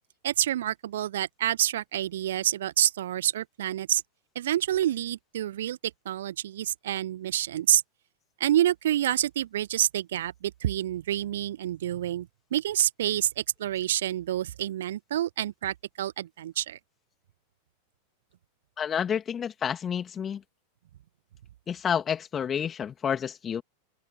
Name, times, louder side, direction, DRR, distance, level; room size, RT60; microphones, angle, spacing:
voice 1, 0.2-4.0 4.3-5.8 6.0-7.8 8.4-16.8, right 12 dB, 60° right, 1.6 m, -28 dB
voice 2, 18.8-20.4 21.7-23.6, left 8 dB, 25° left, 3.1 m, -29 dB
figure-of-eight pair, 90°, 0 cm